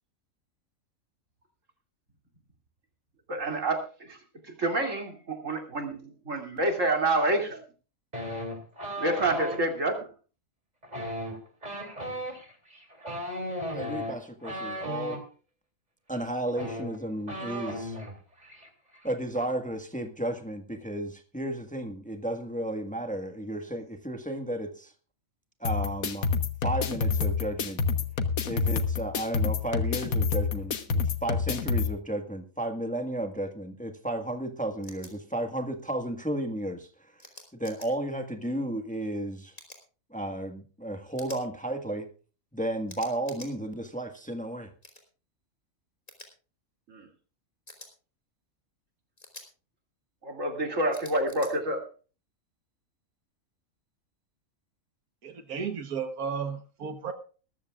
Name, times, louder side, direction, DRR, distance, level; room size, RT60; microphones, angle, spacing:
voice 1, 3.3-3.8 4.1-4.2 4.6-7.6 9.0-10.1 46.9-47.0 50.2-51.8, right 2 dB, 60° right, 3 dB, 3.0 m, -28 dB
sound 1, 8.1-9.6 10.8-15.2 16.1-16.2 16.5-18.1 18.4-18.7 18.9-19.4, equal, 30° right, 3.2 m, -36 dB
voice 2, 13.7-15.2 16.1-18.0 19.0-24.9 25.6-26.3 26.6-27.8 28.4-36.9 37.5-39.5 40.1-42.1 42.5-44.7, right 1 dB, 5° left, 5 dB, 1.5 m, -33 dB
sound 2, 25.6-31.9, left 5 dB, 75° left, 1.6 m, -28 dB
sound 3, 34.8-35.1 37.2-37.9 39.5-39.8 41.2-41.4 42.9-43.5 44.8-45.0 46.1-46.3 47.7-47.9 49.2-49.5 50.9-51.5, left 1 dB, 25° left, 3.4 m, -47 dB
voice 3, 55.2-57.1, right 6 dB, 90° right, 9 dB, 1.7 m, -34 dB
20.5 x 14.0 x 2.4 m, 0.37 s
omnidirectional pair, 1.5 m